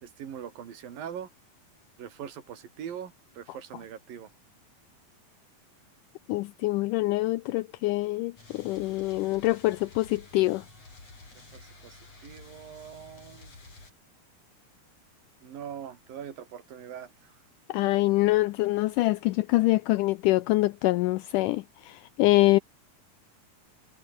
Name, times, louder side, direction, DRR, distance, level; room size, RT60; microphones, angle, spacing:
voice 1, 0.0-1.3 2.0-4.3 11.5-13.5 15.4-17.3, right 9 dB, 75° right, 4.5 m, -42 dB
voice 2, 6.3-10.6 17.7-22.6, left 19 dB, 80° left, 2.0 m, -25 dB
sound 1, 8.4-13.9, left 3 dB, 45° left, 8.8 m, -51 dB
omnidirectional pair, 4.1 m